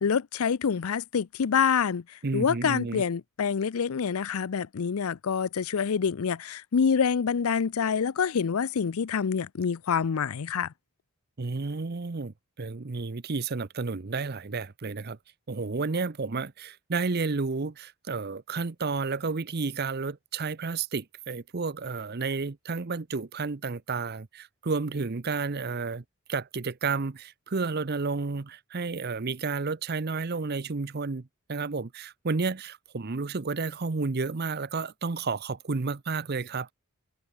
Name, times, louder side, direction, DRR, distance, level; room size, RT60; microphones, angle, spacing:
voice 1, 0.0-2.0 2.3-10.7, left 6 dB, 75° left, 0.5 m, -26 dB
voice 2, 2.2-3.0 11.4-15.2 15.5-26.0 26.3-36.7, right 4 dB, 45° right, 0.7 m, -31 dB
head